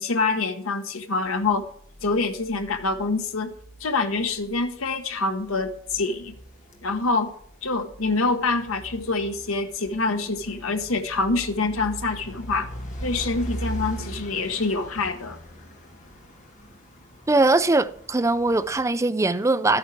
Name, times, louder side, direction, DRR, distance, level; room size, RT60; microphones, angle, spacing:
voice 1, 0.0-1.6 2.0-3.5 3.8-6.4 6.8-7.3 7.6-12.7 13.0-15.4, left 3 dB, 80° left, 1.1 m, -26 dB
sound 1, 1.4-18.8, right 1 dB, 35° left, 1.6 m, -40 dB
voice 2, 17.3-19.8, right 2 dB, 15° right, 0.4 m, -21 dB
12.5 x 8.8 x 4.7 m
head